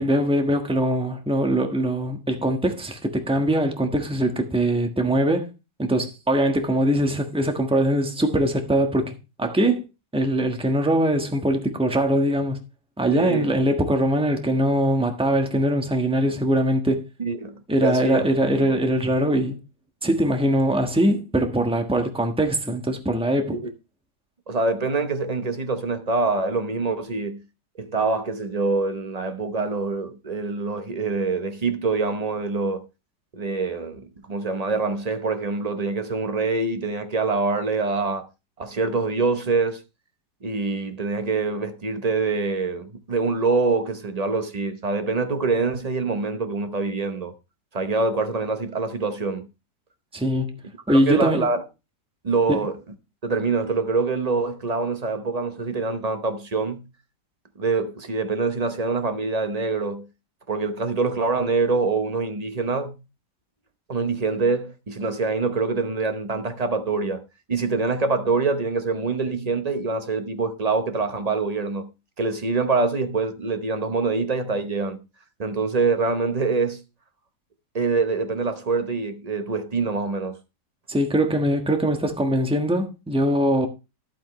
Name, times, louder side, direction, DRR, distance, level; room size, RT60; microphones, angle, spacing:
voice 1, 0.0-5.5 5.8-9.9 10.1-12.6 13.0-17.0 17.7-19.6 20.0-23.6 50.1-50.6 50.9-51.5 52.5-52.6 80.9-83.7, right 1 dB, 5° right, 1.1 m, -22 dB
voice 2, 13.1-13.5 17.2-18.3 18.6-18.8 23.5-23.7 24.5-27.4 27.8-32.9 33.3-38.3 38.6-39.8 40.4-47.3 47.7-49.5 50.9-51.6 52.2-52.8 53.2-56.8 57.6-60.1 60.5-62.9 63.9-67.2 67.5-71.9 72.2-75.0 75.4-76.8 77.7-80.4, right 3 dB, 30° right, 0.7 m, -25 dB
11.5 x 8.6 x 3.1 m
omnidirectional pair, 1.9 m